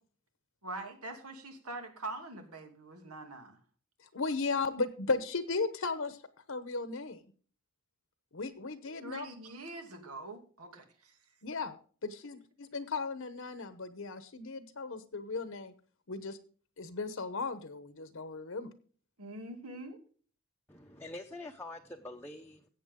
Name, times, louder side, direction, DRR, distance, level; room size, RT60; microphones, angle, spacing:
voice 1, 0.6-3.6 9.0-11.2 19.2-20.0, right 2 dB, 85° right, 5 dB, 2.6 m, -44 dB
voice 2, 4.0-7.3 8.3-9.3 11.4-15.7 16.1-16.4 16.8-18.7, left 4 dB, 60° left, 12 dB, 1.0 m, -36 dB
voice 3, 20.7-22.7, left 2 dB, 10° left, 1 dB, 0.8 m, -45 dB
15.0 x 8.5 x 3.7 m, 0.42 s
head